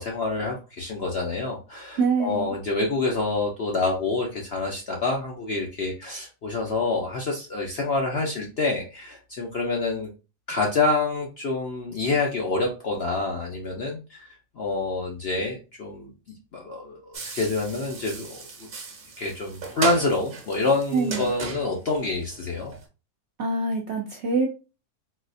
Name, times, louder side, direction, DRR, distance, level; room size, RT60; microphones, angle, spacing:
voice 1, 0.0-10.1 10.5-14.3 14.6-16.1 16.5-18.7 19.2-22.7, left 3 dB, 60° left, 0 dB, 0.6 m, -27 dB
voice 2, 2.0-2.5 20.9-21.2 23.4-24.5, right 4 dB, 65° right, 0 dB, 0.7 m, -25 dB
sound 1, 17.1-22.9, right 4 dB, 45° right, 0.9 m, -36 dB
4.0 x 2.4 x 2.5 m, 0.31 s
omnidirectional pair, 1.7 m